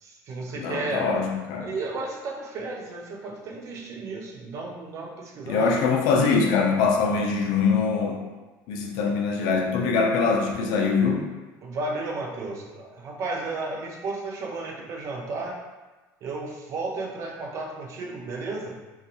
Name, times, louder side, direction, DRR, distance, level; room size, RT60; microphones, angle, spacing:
voice 1, 0.0-1.1 1.6-5.8 11.6-15.6 16.2-18.8, right 3 dB, 45° right, 0 dB, 0.5 m, -33 dB
voice 2, 0.6-1.7 5.5-8.2 8.7-11.3, left 4 dB, 75° left, 2 dB, 0.4 m, -23 dB
2.5 x 2.3 x 2.7 m, 1.2 s
cardioid pair, 145°, 7 cm